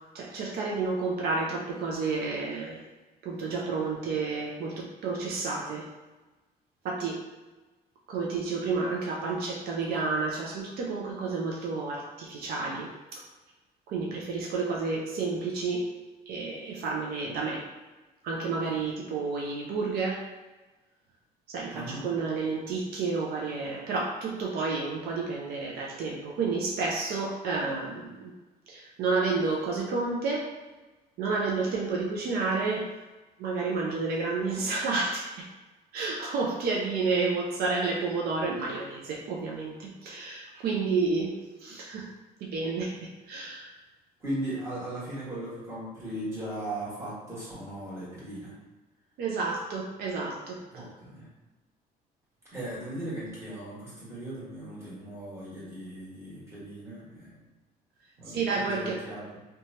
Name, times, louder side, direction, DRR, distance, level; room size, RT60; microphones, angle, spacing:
voice 1, 0.1-2.8 3.2-5.9 6.8-7.2 8.1-13.2 13.9-15.9 16.3-17.6 18.2-20.2 21.5-28.3 28.7-30.5 31.2-32.9 33.4-35.5 35.9-42.1 42.4-43.7 49.2-50.6 58.3-59.0, right 4 dB, 65° right, -2 dB, 0.4 m, -30 dB
voice 2, 21.7-22.1 44.2-48.5 50.7-51.3 52.5-57.4 58.2-59.4, right 1 dB, 15° right, -9 dB, 1.5 m, -38 dB
2.8 x 2.2 x 2.7 m, 1.2 s
cardioid pair, 110°, 17 cm